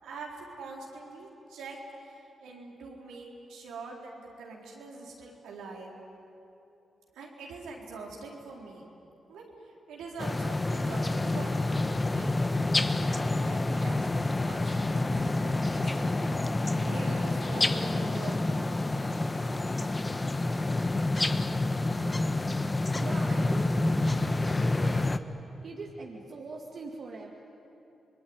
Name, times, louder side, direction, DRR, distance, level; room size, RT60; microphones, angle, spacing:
voice 1, 0.0-5.9 7.1-8.9 9.3-9.4 9.9-12.3 12.8-16.5 16.8-18.8, right 3 dB, 85° right, -2 dB, 4.0 m, -44 dB
sound 1, 10.2-25.2, left 2 dB, 30° left, 1.2 m, -28 dB
voice 2, 22.9-23.8 24.4-25.0 25.6-27.3, right 3 dB, 60° right, 0 dB, 2.2 m, -42 dB
26.5 x 21.0 x 9.6 m, 2.9 s
supercardioid pair, 45°, 0 cm